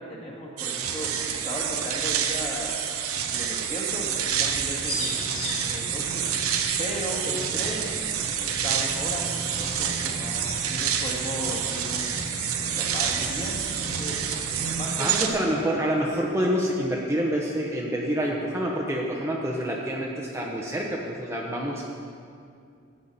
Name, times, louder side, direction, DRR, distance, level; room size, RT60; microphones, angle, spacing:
voice 1, 0.0-2.8 3.3-5.2 5.7-6.3 6.8-7.9 8.4-12.2 12.6-14.2 14.8-15.3, equal, 30° left, -3 dB, 2.1 m, -36 dB
sound 1, 0.6-15.3, right 8 dB, 90° right, 0.9 m, -28 dB
sound 2, 3.9-14.7, equal, 75° left, 3.3 m, -37 dB
voice 2, 15.0-21.8, equal, 15° right, -2 dB, 0.9 m, -27 dB
14.5 x 9.2 x 4.2 m, 2.4 s
head